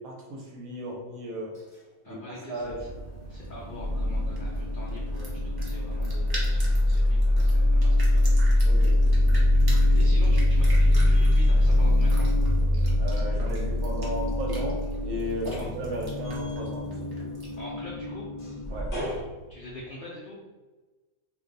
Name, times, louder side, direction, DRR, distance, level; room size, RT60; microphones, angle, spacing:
voice 1, 0.0-1.5 2.1-2.2 2.5-2.8 8.6-9.0 13.0-17.1 18.7-18.9, equal, 75° right, 0 dB, 1.1 m, -35 dB
voice 2, 2.0-2.9 3.3-8.5 9.6-9.7 9.9-12.3 15.5-15.7 17.6-18.3 19.5-20.4, left 1 dB, 70° left, -4 dB, 0.4 m, -44 dB
sound 1, 2.1-3.0 3.3-19.2, left 1 dB, 30° left, 0.8 m, -23 dB
Motorcycle, 2.6-19.8, right 1 dB, 90° left, 1.1 m, -38 dB
sound 2, 2.8-17.7, right 1 dB, 40° right, 0.3 m, -44 dB
2.5 x 2.3 x 3.8 m, 1.2 s
omnidirectional pair, 1.5 m